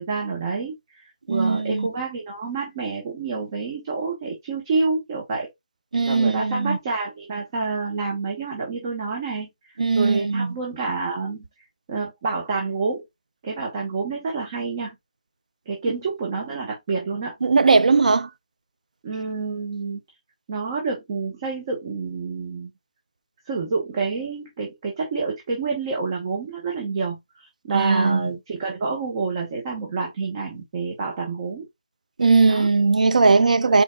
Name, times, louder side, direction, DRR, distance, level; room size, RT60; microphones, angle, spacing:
voice 1, 0.0-5.5 6.1-9.5 9.9-11.5 11.9-13.0 13.4-14.9 15.7-17.3 19.0-20.0 20.5-22.7 23.5-31.7 32.5-32.7 33.6-33.8, right 4 dB, 30° right, 1.2 m, -28 dB
voice 2, 1.3-1.9 5.9-6.8 9.8-10.5 17.4-18.3 27.7-28.3 32.2-33.8, right 4 dB, 75° right, 0.5 m, -19 dB
4.5 x 4.2 x 2.3 m
figure-of-eight pair, 160°, 4 cm